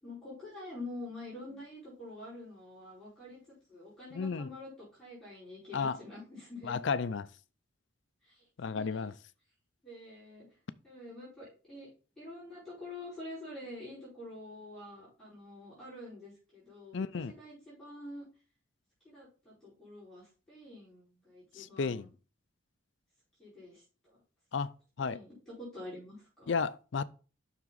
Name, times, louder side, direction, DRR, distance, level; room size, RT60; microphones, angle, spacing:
voice 1, 0.0-3.4 3.7-6.8 8.2-8.4 8.7-9.1 9.8-10.5 10.8-11.9 12.2-18.2 19.0-22.1 23.4-24.2 25.0-26.6, left 2 dB, ahead, 4.9 m, -47 dB
voice 2, 4.1-4.5 5.7-6.0 6.7-7.3 8.6-9.1 16.9-17.3 21.6-22.1 24.5-24.7 25.0-25.2 26.5-27.0, left 5 dB, 60° left, 0.4 m, -33 dB
7.2 x 6.1 x 4.0 m
head